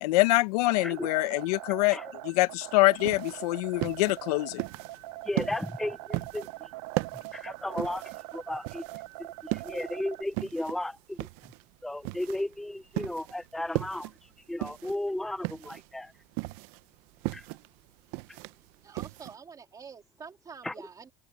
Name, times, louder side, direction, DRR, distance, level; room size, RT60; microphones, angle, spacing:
voice 1, 0.0-2.0 2.2-4.6, left 21 dB, 90° left, 0.8 m, -25 dB
sound 1, 0.6-10.2, right 17 dB, 85° right, 1.7 m, -43 dB
sound 2, 2.9-19.3, right 22 dB, 55° right, 0.7 m, -37 dB
voice 2, 5.2-6.7 7.3-8.8 9.4-11.2 11.8-16.1 17.3-17.5 18.3-18.4 20.6-20.7, left 1 dB, ahead, 0.3 m, -35 dB
voice 3, 18.8-21.1, right 6 dB, 20° right, 3.3 m, -47 dB
open air
cardioid pair, 165°, 19 cm